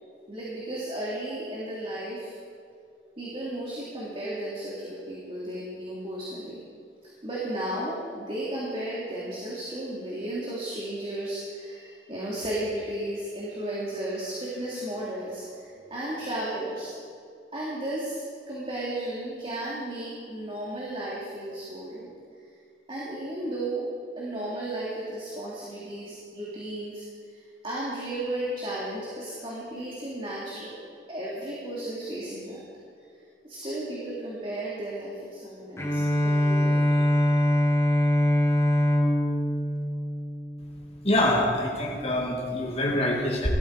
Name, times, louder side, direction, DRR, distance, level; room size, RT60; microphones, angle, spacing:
voice 1, 0.3-2.3 3.2-6.6 7.2-16.9 17.5-22.1 22.9-23.9 24.2-30.7 31.1-32.6 33.4-37.3, right 1 dB, 30° right, -7 dB, 2.8 m, -34 dB
Bowed string instrument, 35.8-41.0, equal, 15° left, 1.4 m, -23 dB
voice 2, 41.0-43.5, left 1 dB, 35° left, -2 dB, 2.6 m, -25 dB
17.5 x 13.5 x 4.8 m, 2.5 s
head